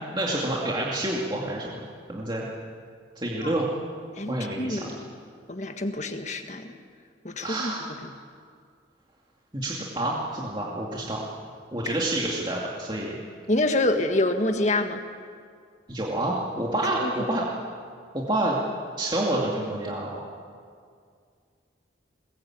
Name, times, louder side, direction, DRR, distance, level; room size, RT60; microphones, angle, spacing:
voice 1, 0.0-1.8 2.1-2.5 3.2-3.7 4.3-4.8 7.4-7.9 9.5-11.2 11.7-13.2 15.9-17.5 18.1-18.6 19.0-20.1, right 1 dB, 25° right, -4 dB, 2.4 m, -28 dB
voice 2, 4.2-5.1 5.5-6.7 7.2-7.7 8.0-8.1 11.9-12.0 13.5-15.0 17.0-17.3, left 2 dB, 40° left, 6 dB, 1.6 m, -27 dB
22.5 x 20.0 x 8.8 m, 2.2 s
head